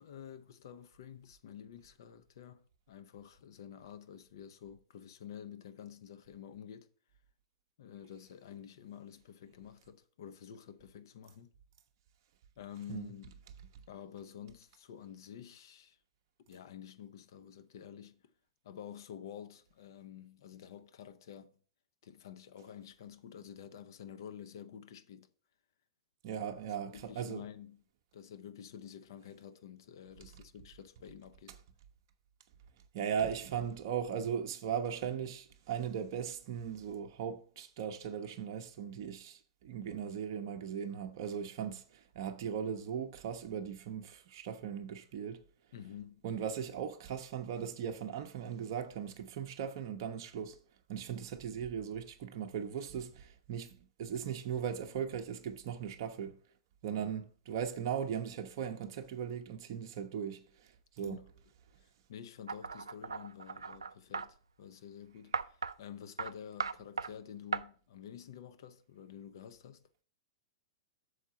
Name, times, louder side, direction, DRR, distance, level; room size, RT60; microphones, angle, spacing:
voice 1, 0.0-6.9 7.8-11.5 12.6-13.4 13.9-16.0 16.5-18.2 18.6-21.6 22.0-25.3 26.8-27.8 28.1-31.6 45.7-46.2 57.0-57.1 61.0-61.2 61.8-69.8, left 9 dB, 60° left, 0.6 m, -50 dB
voice 2, 26.2-27.5 32.9-45.4 46.2-50.6 50.9-56.4 56.8-61.2, right 8 dB, 50° right, 0.7 m, -38 dB
sound 1, 62.5-64.3 65.3-65.7 66.2-66.3 66.6-67.1 67.5-67.6, right 5 dB, 80° right, 0.3 m, -37 dB
6.4 x 4.5 x 5.9 m
figure-of-eight pair, 100°, 2 cm